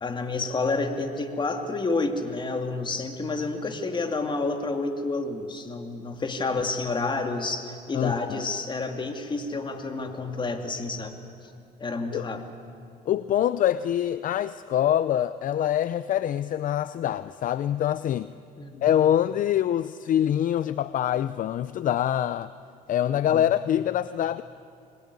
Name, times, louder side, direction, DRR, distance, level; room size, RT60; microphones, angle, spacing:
voice 1, 0.0-11.2 11.8-12.4 18.6-18.9 23.1-23.4, left 3 dB, 30° left, 5 dB, 2.5 m, -29 dB
voice 2, 7.9-8.5 12.1-12.3 13.1-18.3 18.8-22.5 22.9-24.4, left 11 dB, 50° left, 15 dB, 0.6 m, -25 dB
26.0 x 20.5 x 9.7 m, 2.5 s
cardioid pair, 110°, 17 cm